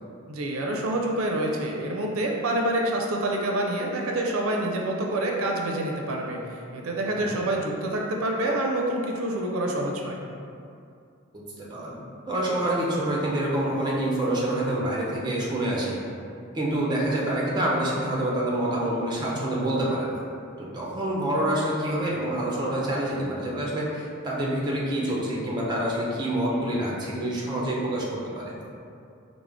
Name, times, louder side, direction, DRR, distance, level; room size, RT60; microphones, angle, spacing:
voice 1, 0.3-10.2, right 1 dB, 80° right, 0 dB, 0.4 m, -27 dB
voice 2, 11.3-12.0 12.3-16.0 16.5-20.2 20.6-28.5, right 1 dB, 20° right, -4 dB, 0.6 m, -27 dB
4.8 x 2.0 x 3.5 m, 2.5 s
head